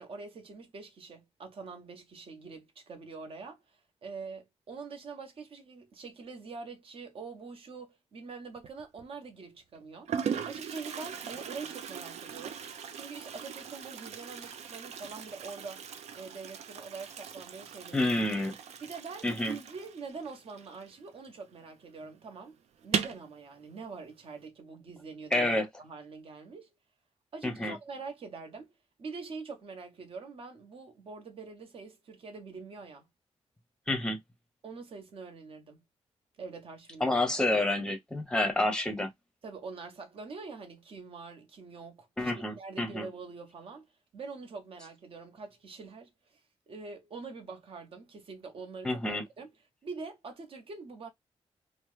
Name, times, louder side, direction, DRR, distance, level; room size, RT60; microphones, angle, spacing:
voice 1, 0.0-10.1 10.4-12.6 12.9-15.8 16.1-18.1 18.8-22.6 22.8-25.5 25.8-26.7 27.3-28.7 29.0-33.0 34.6-35.8 36.4-37.1 39.4-43.8 44.1-46.4 46.7-49.5 49.8-51.1, right 4 dB, 55° right, 0.8 m, -44 dB
Toilet flush, 8.6-9.0 9.7-9.8 10.1-21.4 21.6-21.7 22.0-22.1 22.8-23.3, right 7 dB, 80° right, 0.5 m, -39 dB
voice 2, 17.9-18.6 19.2-19.6 25.3-25.7 27.4-27.8 33.9-34.2 37.0-39.1 42.2-43.1 48.8-49.2, left 1 dB, 5° left, 0.6 m, -29 dB
2.9 x 2.1 x 3.0 m
wide cardioid pair, 160°, 11 cm